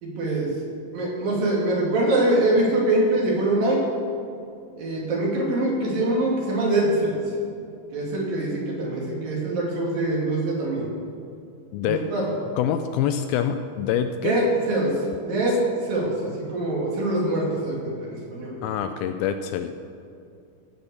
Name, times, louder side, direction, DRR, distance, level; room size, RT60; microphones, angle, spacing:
voice 1, 0.0-0.5 0.9-3.8 4.8-7.2 7.9-10.9 11.8-12.3 14.2-14.9 15.3-18.5, right 1 dB, 65° right, -4 dB, 4.1 m, -24 dB
voice 2, 11.7-12.0 12.6-14.4 18.6-19.7, left 9 dB, 80° left, 8 dB, 2.2 m, -25 dB
16.5 x 5.6 x 7.0 m, 2.5 s
omnidirectional pair, 4.6 m